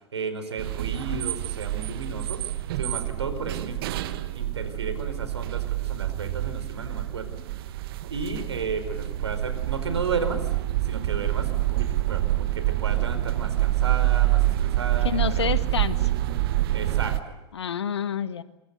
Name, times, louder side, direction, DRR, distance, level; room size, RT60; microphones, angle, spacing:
voice 1, 0.1-7.3 8.1-10.5 10.8-15.5 16.7-17.4, right 4 dB, 75° right, 11 dB, 4.6 m, -34 dB
sound 1, 0.6-17.2, right 15 dB, 60° right, 1.4 m, -27 dB
voice 2, 15.0-16.1 17.5-18.4, left 7 dB, 75° left, 14 dB, 1.5 m, -28 dB
27.0 x 24.5 x 8.1 m, 0.88 s
figure-of-eight pair, 90°, 14 cm